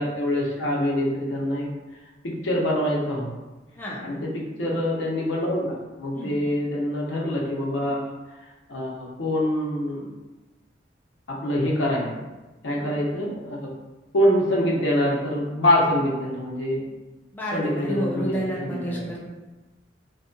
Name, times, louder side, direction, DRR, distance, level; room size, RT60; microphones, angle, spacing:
voice 1, 0.0-3.3 4.0-8.0 8.7-10.1 11.3-12.1 12.6-13.7 14.1-16.8 17.5-19.0, left 1 dB, 70° left, -3 dB, 0.6 m, -25 dB
voice 2, 17.3-19.2, equal, 10° left, -6 dB, 0.4 m, -30 dB
2.6 x 2.2 x 2.5 m, 1.1 s
head